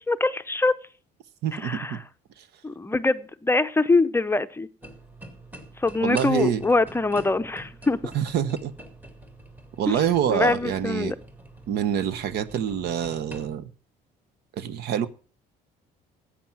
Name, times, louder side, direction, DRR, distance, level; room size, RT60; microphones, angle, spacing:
voice 1, 0.1-0.7 1.5-2.0 2.6-4.7 5.8-8.0 10.3-11.2, left 3 dB, 15° left, 0.6 m, -23 dB
voice 2, 1.4-2.0 2.4-2.5 6.0-6.6 8.1-8.7 9.8-11.1 11.7-13.7 14.5-15.1, right 9 dB, 75° right, 1.1 m, -26 dB
sound 1, 4.8-13.6, right 1 dB, 10° right, 2.1 m, -45 dB
13.5 x 8.6 x 6.0 m
cardioid pair, 110°, 17 cm